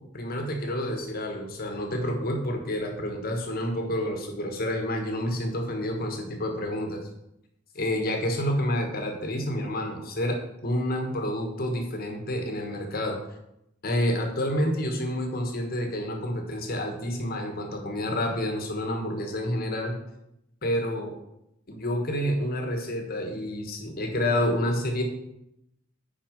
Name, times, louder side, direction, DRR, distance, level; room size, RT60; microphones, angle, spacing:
voice 1, 0.1-7.0 7.7-13.2 13.8-20.0 20.6-21.1 21.7-25.0, left 1 dB, 50° left, 3 dB, 1.3 m, -29 dB
6.0 x 4.8 x 5.1 m, 0.84 s
head